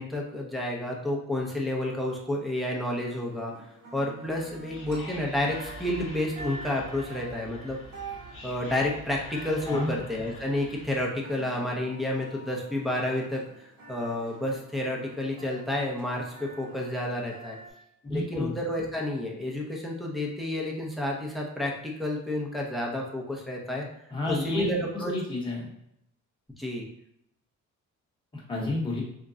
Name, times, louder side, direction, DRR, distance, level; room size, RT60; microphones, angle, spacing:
voice 1, 0.0-3.5 3.9-7.8 8.4-17.6 18.1-23.8 24.3-25.1 26.6-26.9, left 1 dB, ahead, -1 dB, 0.7 m, -30 dB
sound 1, 3.1-17.7, right 2 dB, 70° right, 1.4 m, -46 dB
Whispering, 4.3-11.2, left 1 dB, 45° left, 0.7 m, -46 dB
voice 2, 18.0-18.5 24.1-24.7 24.9-25.7 28.3-29.0, left 2 dB, 15° left, -4 dB, 1.0 m, -30 dB
3.6 x 2.2 x 3.9 m, 0.78 s
cardioid pair, 145°, 31 cm